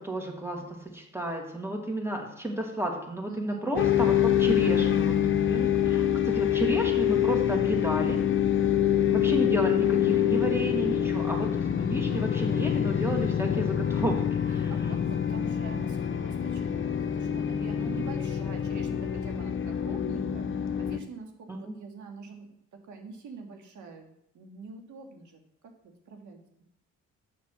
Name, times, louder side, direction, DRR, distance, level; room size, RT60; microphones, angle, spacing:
voice 1, 0.0-8.2 9.1-14.7 21.5-21.8, right 1 dB, 10° right, 1 dB, 2.2 m, -32 dB
voice 2, 3.3-3.6 14.5-26.4, right 4 dB, 75° right, 2 dB, 2.0 m, -45 dB
sound 1, 3.8-21.0, left 10 dB, 40° left, 0.7 m, -26 dB
7.3 x 6.0 x 6.2 m, 0.77 s
cardioid pair, 90°, 30 cm